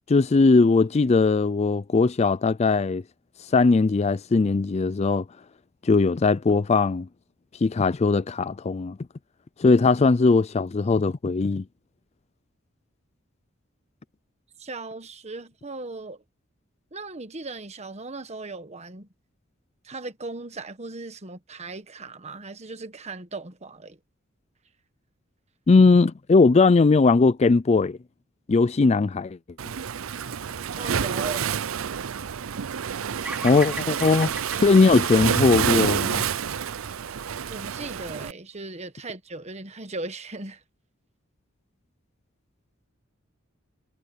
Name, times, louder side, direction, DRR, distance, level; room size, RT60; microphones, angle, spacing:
voice 1, 0.1-3.0 3.5-5.2 5.8-7.1 7.6-9.0 9.6-11.6 25.7-28.0 28.5-29.4 33.4-36.3, left 3 dB, 30° left, 0.4 m, -19 dB
voice 2, 14.6-16.2 16.9-19.1 19.8-24.0 30.8-31.6 37.5-40.6, right 3 dB, 35° right, 1.4 m, -37 dB
Waves surf, 29.6-38.3, right 7 dB, 85° right, 0.6 m, -28 dB
Bird vocalization bird call bird song, 33.2-37.5, right 1 dB, 5° right, 4.1 m, -39 dB
head